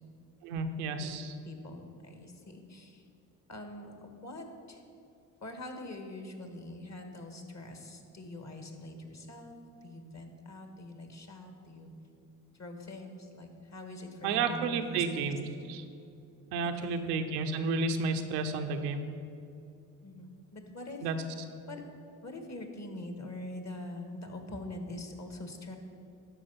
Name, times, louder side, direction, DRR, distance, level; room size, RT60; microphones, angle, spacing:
voice 1, 0.4-1.3 14.2-15.4 15.7-15.8 16.5-19.1 21.0-21.2, right 4 dB, 90° right, 6 dB, 0.8 m, -31 dB
voice 2, 1.4-3.0 3.5-4.8 5.4-11.9 12.6-15.3 16.6-17.1 20.0-21.1 21.7-21.8 22.2-25.8, left 1 dB, 35° left, 5 dB, 1.7 m, -44 dB
12.0 x 5.0 x 5.7 m, 2.6 s
hypercardioid pair, 55°, 45 cm